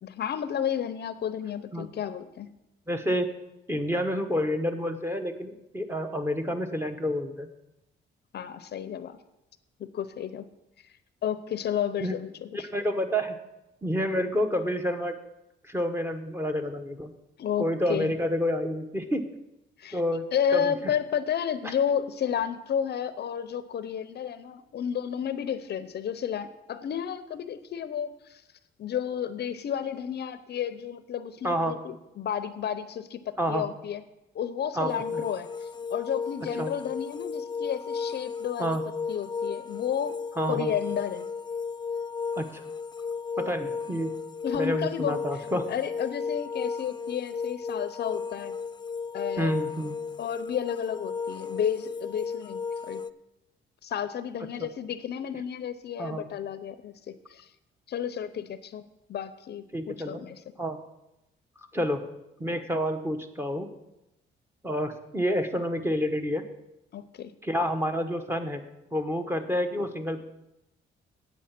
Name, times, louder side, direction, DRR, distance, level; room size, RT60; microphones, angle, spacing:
voice 1, 0.0-2.5 8.3-9.2 9.8-10.5 11.2-12.7 17.4-18.1 19.8-20.0 20.3-28.4 28.8-34.0 34.3-38.8 39.1-40.2 40.5-41.2 44.4-45.2 45.7-48.5 49.1-49.5 50.2-53.0 53.8-57.5 57.9-60.4 66.9-67.3, left 8 dB, 55° left, 13 dB, 0.6 m, -32 dB
voice 2, 2.9-3.3 3.7-7.5 12.0-12.2 12.5-13.4 13.8-15.1 15.6-17.1 17.6-19.2 19.9-20.9 21.6-21.7 31.4-31.8 33.4-33.6 34.8-35.2 36.4-36.7 38.6-38.8 40.4-40.7 42.4-42.6 43.4-44.2 44.5-45.7 49.4-50.0 54.6-54.7 56.0-56.3 59.7-60.2 60.6-60.8 61.7-62.0 62.4-63.7 64.6-66.4 67.4-68.6 68.9-70.2, equal, 10° right, 6 dB, 1.2 m, -29 dB
sound 1, 34.9-53.1, left 5 dB, 20° left, 0.4 m, -34 dB
8.3 x 8.3 x 5.9 m, 0.90 s
cardioid pair, 90°, 20 cm